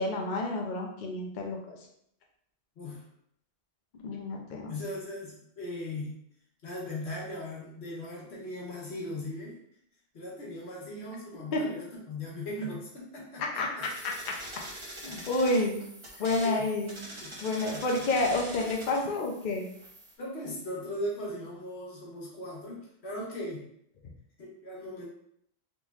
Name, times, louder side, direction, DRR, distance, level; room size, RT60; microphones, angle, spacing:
voice 1, 0.0-1.8 4.0-4.7 11.5-11.6 13.6-13.7 15.0-15.8 16.2-17.0 17.4-19.7, left 2 dB, 55° left, 0 dB, 0.6 m, -29 dB
voice 2, 2.8-3.1 4.7-6.2 6.6-9.6 10.1-13.8 15.1-15.2 16.1-16.6 17.2-18.0 20.2-23.7 24.4-25.1, left 1 dB, 80° left, -4 dB, 1.4 m, -39 dB
sound 1, 13.8-20.1, right 1 dB, 30° right, 0.7 m, -44 dB
3.7 x 3.0 x 2.4 m, 0.69 s
omnidirectional pair, 1.1 m